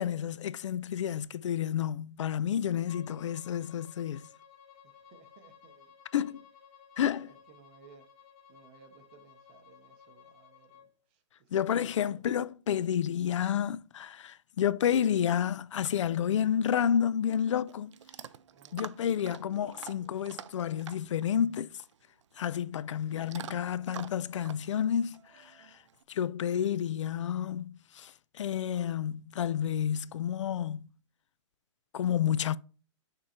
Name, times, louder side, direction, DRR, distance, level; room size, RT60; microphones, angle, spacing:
voice 1, 0.0-4.3 6.1-6.4 7.0-7.3 11.5-17.9 18.7-21.8 22.4-25.7 26.1-30.9 31.9-32.6, left 9 dB, 70° left, 0.4 m, -30 dB
Bowed string instrument, 2.8-10.9, left 8 dB, 20° left, 0.7 m, -57 dB
voice 2, 4.8-6.4 7.2-8.1 8.5-12.2 13.1-13.5 18.5-18.8 23.2-23.6, right 7 dB, 20° right, 0.6 m, -60 dB
Chewing mastication / Dog, 16.9-26.0, right 9 dB, 70° right, 0.4 m, -49 dB
6.5 x 3.7 x 4.2 m
hypercardioid pair, 170°, 16 cm